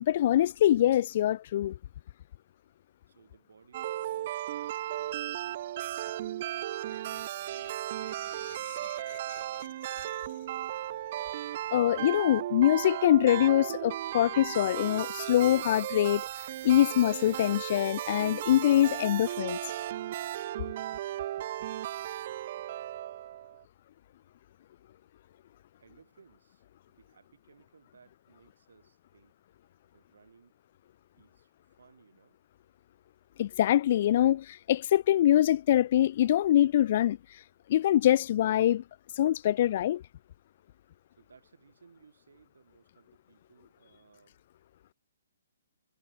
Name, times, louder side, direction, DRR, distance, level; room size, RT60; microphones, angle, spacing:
voice 1, 0.0-1.8 8.2-8.5 11.7-16.3 16.6-19.6 33.4-37.4 37.7-38.8 39.1-40.0, left 12 dB, 40° left, 0.3 m, -24 dB
voice 2, 3.1-5.7 6.0-7.9 8.4-9.9 22.2-22.5 25.8-29.4 29.9-30.5 31.1-32.4 41.2-44.4, right 5 dB, 80° right, 8.0 m, -61 dB
sound 1, 3.7-23.6, right 13 dB, 40° right, 1.1 m, -36 dB
hypercardioid pair, 160°, 0 cm